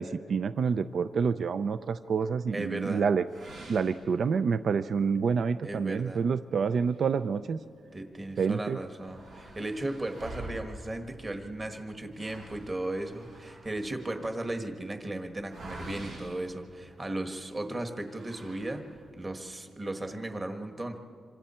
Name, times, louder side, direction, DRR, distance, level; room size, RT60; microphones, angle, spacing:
voice 1, 0.0-3.2 3.7-7.6 8.4-8.8, right 6 dB, 55° right, 12 dB, 0.4 m, -28 dB
voice 2, 2.5-3.0 5.6-6.2 7.9-18.8 19.2-21.0, right 1 dB, 20° right, 5 dB, 1.5 m, -36 dB
sound 1, 3.3-4.7 5.2-5.3 5.7-5.8 6.6-7.9 8.3-8.4 8.6-17.3 18.0-19.2, right 1 dB, 85° right, 7.7 m, -47 dB
26.5 x 25.5 x 4.4 m, 2.4 s
wide cardioid pair, 140°, 0 cm